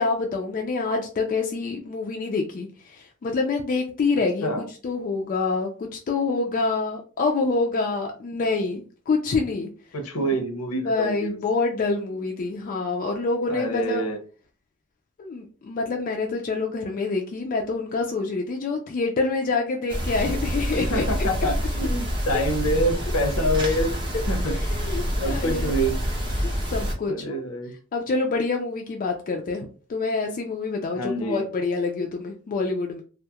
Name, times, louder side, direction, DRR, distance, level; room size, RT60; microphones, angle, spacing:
voice 1, 0.0-9.7 10.2-10.4 10.8-14.1 15.2-21.0 24.5-25.7 26.7-27.4 27.9-33.0, left 3 dB, 40° left, 2 dB, 0.3 m, -26 dB
voice 2, 9.9-11.4 13.5-14.2 20.9-23.9 24.3-24.5 25.2-26.0 27.1-27.7 30.9-31.5, equal, 75° left, 5 dB, 0.6 m, -26 dB
sound 1, 19.9-26.9, equal, 20° right, 0.5 m, -27 dB
2.2 x 2.0 x 2.7 m, 0.38 s
head